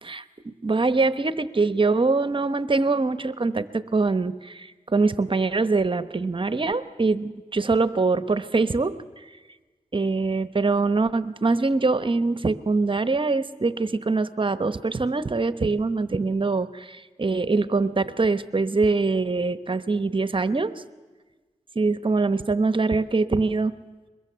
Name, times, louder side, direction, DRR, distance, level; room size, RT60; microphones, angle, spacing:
voice 1, 0.0-9.3 9.9-20.7 21.7-23.7, right 3 dB, 40° right, 12 dB, 1.0 m, -23 dB
22.5 x 21.5 x 6.9 m, 1.3 s
cardioid pair, 55°, 13 cm